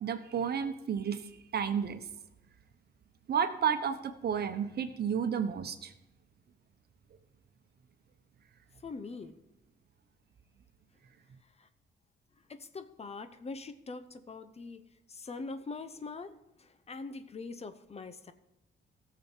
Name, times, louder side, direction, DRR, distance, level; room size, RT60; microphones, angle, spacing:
voice 1, 0.0-2.0 3.3-5.9, right 7 dB, 55° right, 9 dB, 1.0 m, -32 dB
voice 2, 8.8-9.4 11.6-11.7 12.5-14.8 15.1-16.3 16.6-18.3, left 3 dB, 30° left, 11 dB, 0.8 m, -43 dB
16.0 x 7.0 x 4.5 m, 0.88 s
cardioid pair, 90°, 20 cm